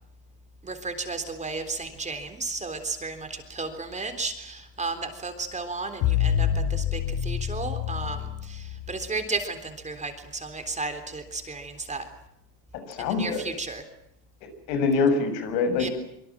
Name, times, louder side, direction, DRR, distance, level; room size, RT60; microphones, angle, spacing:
voice 1, 0.6-12.1 13.0-13.8 15.8-15.9, right 3 dB, 15° right, 7 dB, 3.7 m, -34 dB
sound 1, 6.0-9.1, left 9 dB, 70° left, 3.6 m, -27 dB
voice 2, 12.7-13.4 14.4-15.9, left 4 dB, 90° left, 8 dB, 7.3 m, -25 dB
25.0 x 24.0 x 7.5 m, 0.79 s
cardioid pair, 150°, 48 cm